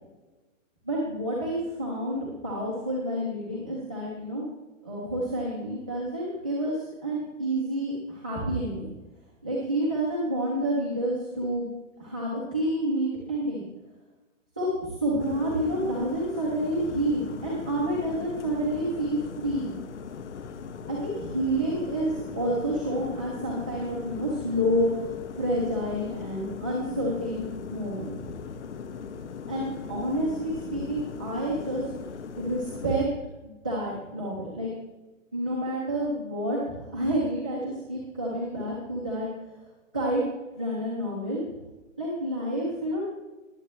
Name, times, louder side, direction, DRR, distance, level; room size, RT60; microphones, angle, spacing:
voice 1, 0.8-4.4 4.8-8.9 9.4-11.7 12.0-13.6 14.6-19.7 20.9-25.1 25.4-28.1 29.5-31.8 32.4-33.1 33.4-34.7 35.3-39.3 39.9-40.2 40.5-41.4 42.0-43.0, right 1 dB, 5° right, -9 dB, 0.4 m, -29 dB
sound 1, 15.2-33.1, left 6 dB, 60° left, 1.4 m, -39 dB
21.0 x 8.3 x 3.0 m, 1.1 s
hypercardioid pair, 165°, 40 cm